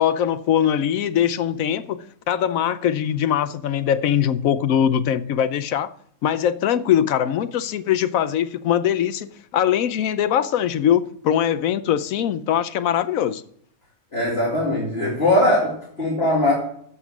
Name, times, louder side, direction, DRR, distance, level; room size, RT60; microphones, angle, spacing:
voice 1, 0.0-5.9 6.2-13.4, left 9 dB, 75° left, 1.1 m, -22 dB
voice 2, 14.1-16.5, left 1 dB, 45° left, 2.5 m, -20 dB
11.5 x 7.3 x 6.0 m
omnidirectional pair, 1.5 m